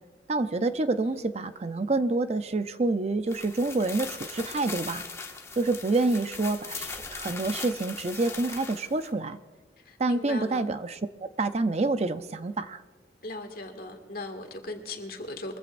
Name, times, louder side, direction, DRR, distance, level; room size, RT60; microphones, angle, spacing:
voice 1, 0.3-5.0 5.6-9.4 10.0-12.8, right 2 dB, 35° right, 10 dB, 0.5 m, -27 dB
voice 2, 1.0-1.4 9.9-10.7 13.2-15.6, left 2 dB, 55° left, 4 dB, 2.0 m, -38 dB
sound 1, 3.3-9.1, left 4 dB, 15° left, 1.3 m, -39 dB
23.0 x 15.5 x 2.6 m, 1.4 s
head